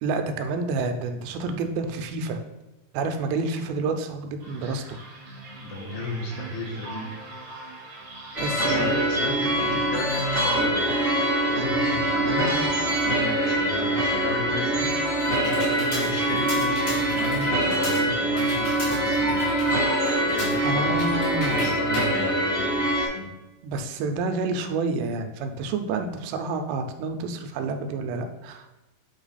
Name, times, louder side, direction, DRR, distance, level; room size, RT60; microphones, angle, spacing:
voice 1, 0.0-2.4 2.9-4.8 8.4-8.9 20.6-21.6 23.6-28.7, right 3 dB, 90° right, 6 dB, 2.9 m, -29 dB
sound 1, 4.4-20.2, right 1 dB, 70° right, 1.4 m, -41 dB
voice 2, 5.6-7.1 8.4-10.8 11.5-19.4 20.2-23.3, left 2 dB, 80° left, 0 dB, 2.9 m, -35 dB
sound 2, 8.3-23.1, right 1 dB, 25° right, 1.1 m, -24 dB
Computer keyboard, 14.5-23.1, left 2 dB, 50° left, 3.1 m, -38 dB
8.5 x 3.0 x 4.1 m, 1.0 s
omnidirectional pair, 4.9 m